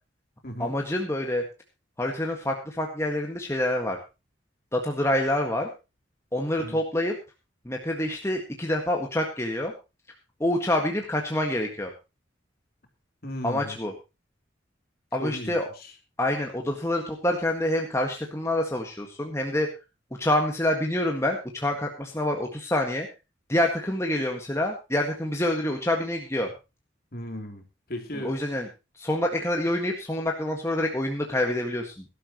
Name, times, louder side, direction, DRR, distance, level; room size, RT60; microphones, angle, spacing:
voice 1, 0.6-1.5 2.0-4.0 4.7-5.7 6.3-7.2 7.7-9.7 10.4-11.9 13.4-13.9 15.1-15.7 16.2-19.7 20.2-23.1 23.5-26.5 28.1-28.7 29.0-32.1, left 1 dB, 15° left, 1 dB, 1.7 m, -27 dB
voice 2, 13.2-13.8 15.2-15.9 27.1-28.4, left 1 dB, 50° left, 4 dB, 3.3 m, -36 dB
18.5 x 12.0 x 3.0 m, 0.28 s
head